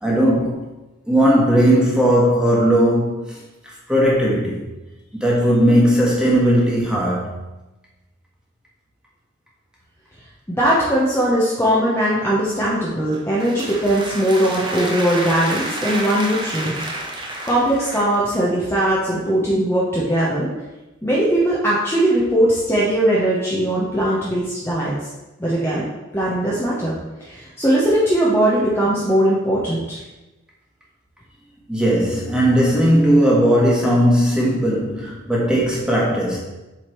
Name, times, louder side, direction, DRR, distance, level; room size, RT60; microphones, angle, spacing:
voice 1, 0.0-0.7 1.1-3.4 3.6-4.6 5.1-7.4 31.7-36.4, equal, 5° right, -5 dB, 1.5 m, -17 dB
voice 2, 10.5-16.7 17.2-20.5 21.0-24.9 25.4-25.9 26.1-30.0, right 1 dB, 10° left, -7 dB, 0.9 m, -19 dB
sound 1, 13.1-18.2, right 1 dB, 25° right, 0.8 m, -30 dB
7.6 x 3.6 x 4.5 m, 1.1 s
head